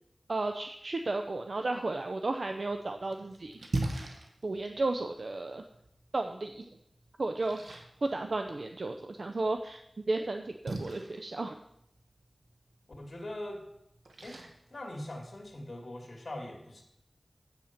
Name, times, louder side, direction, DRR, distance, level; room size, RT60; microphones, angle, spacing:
voice 1, 0.3-3.6 4.4-5.6 6.1-6.7 7.2-9.8 10.1-11.6, right 2 dB, 65° right, 6 dB, 0.5 m, -33 dB
Splash splatter, 2.6-15.6, right 2 dB, 85° right, 1.2 m, -43 dB
voice 2, 13.0-13.6 14.2-14.4 14.7-16.8, left 1 dB, 55° left, 1 dB, 2.1 m, -41 dB
8.0 x 6.6 x 5.8 m, 0.79 s
wide cardioid pair, 50°, 0 cm